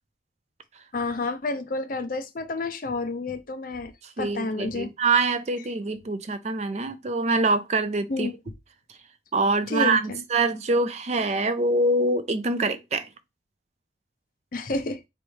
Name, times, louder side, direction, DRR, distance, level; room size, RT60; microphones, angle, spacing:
voice 1, 0.9-3.9 4.2-4.9 8.1-8.4 9.7-10.2 14.5-15.0, left 3 dB, 45° left, 0.5 m, -30 dB
voice 2, 4.2-8.3 9.3-13.1, right 3 dB, 35° right, 0.4 m, -24 dB
3.1 x 3.1 x 4.5 m
head